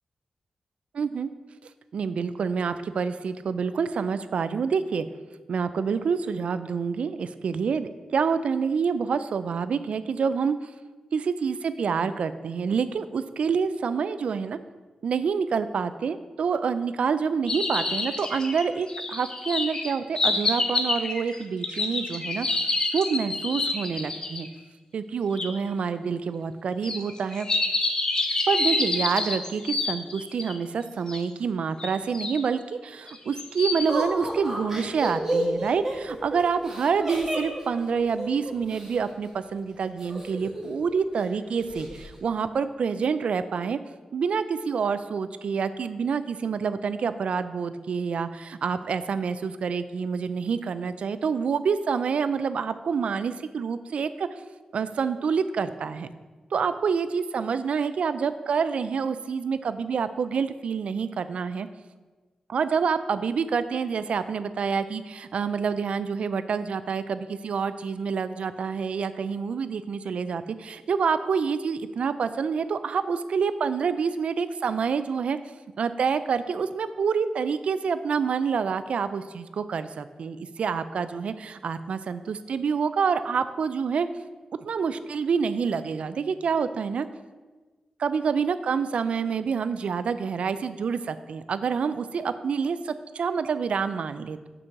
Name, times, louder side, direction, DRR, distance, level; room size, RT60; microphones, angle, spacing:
voice 1, 0.9-1.3 1.9-5.1 5.5-10.7 11.1-14.6 15.0-22.5 22.9-24.5 24.9-27.5 28.5-43.8 44.1-54.3 54.7-56.1 56.5-61.7 62.5-75.4 75.8-84.1 84.6-87.1 88.0-94.4, right 6 dB, 65° right, 12 dB, 0.4 m, -27 dB
sound 1, 17.5-24.5 25.4-25.5 26.8-30.5 31.1-31.2 31.8-32.4 33.1-33.9, left 2 dB, 35° left, 0.7 m, -28 dB
Laughter, 33.9-38.9 40.0-40.8 41.1-41.2 41.6-42.0, right 1 dB, 20° right, 1.8 m, -31 dB
6.1 x 4.6 x 6.6 m, 1.3 s
wide cardioid pair, 150°, 2 cm